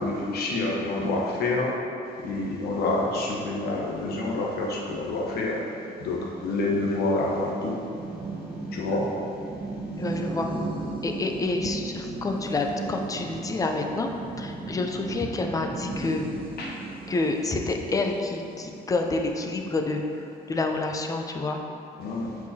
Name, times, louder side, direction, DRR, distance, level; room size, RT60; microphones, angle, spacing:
voice 1, 0.0-1.8 2.2-5.6 6.0-7.8 8.7-9.1 16.6-16.7 22.0-22.4, left 2 dB, 65° left, -2 dB, 1.1 m, -27 dB
sound 1, 4.6-20.0, right 2 dB, 30° right, 0.9 m, -37 dB
voice 2, 10.0-10.5 11.0-14.1 14.4-16.2 17.1-20.0 20.5-21.6, left 3 dB, 20° left, 3 dB, 0.6 m, -28 dB
8.4 x 4.8 x 2.8 m, 2.7 s
cardioid pair, 110°, 17 cm